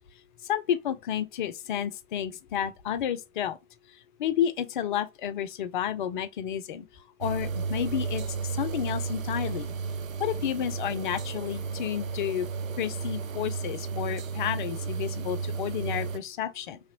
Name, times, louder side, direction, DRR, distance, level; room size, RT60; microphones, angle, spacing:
voice 1, 0.5-3.6 4.2-6.8 7.2-8.2 8.5-9.7 10.2-12.5 12.8-16.8, left 10 dB, 40° left, 0.4 m, -31 dB
sound 1, 7.2-16.2, right 5 dB, 90° right, 0.5 m, -33 dB
3.1 x 2.9 x 2.6 m
figure-of-eight pair, 110°, 39 cm